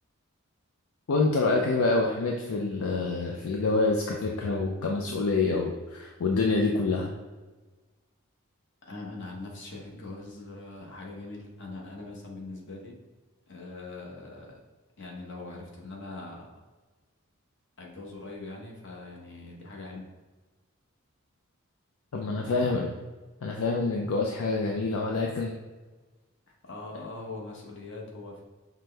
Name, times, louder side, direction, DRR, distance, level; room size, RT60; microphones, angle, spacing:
voice 1, 1.1-7.1 22.1-22.9 23.4-25.6, left 3 dB, 75° left, 0 dB, 0.5 m, -26 dB
voice 2, 8.9-13.0 13.5-14.6 15.0-16.5 17.8-20.1 22.2-22.9 26.6-28.4, left 2 dB, 55° left, -1 dB, 1.0 m, -42 dB
5.8 x 2.2 x 3.2 m, 1.2 s
head